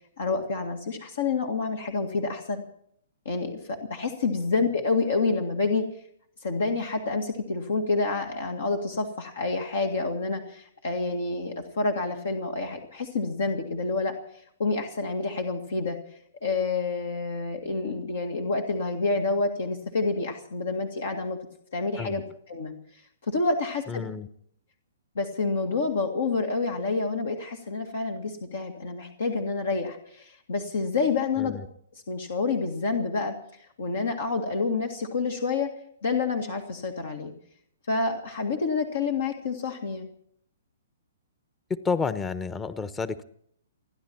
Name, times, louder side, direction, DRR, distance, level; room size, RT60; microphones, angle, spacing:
voice 1, 0.2-2.6 3.3-5.9 6.4-14.2 14.6-16.0 16.4-21.4 21.7-22.2 22.5-22.7 23.3-24.1 25.2-31.6 32.1-33.3 33.8-35.7 36.0-37.3 37.9-40.1, left 3 dB, 65° left, 4 dB, 2.0 m, -28 dB
voice 2, 23.9-24.3 31.4-31.6 41.7-43.2, left 5 dB, 15° left, 15 dB, 1.0 m, -30 dB
29.5 x 10.5 x 4.5 m, 0.66 s
figure-of-eight pair, 120°, 0 cm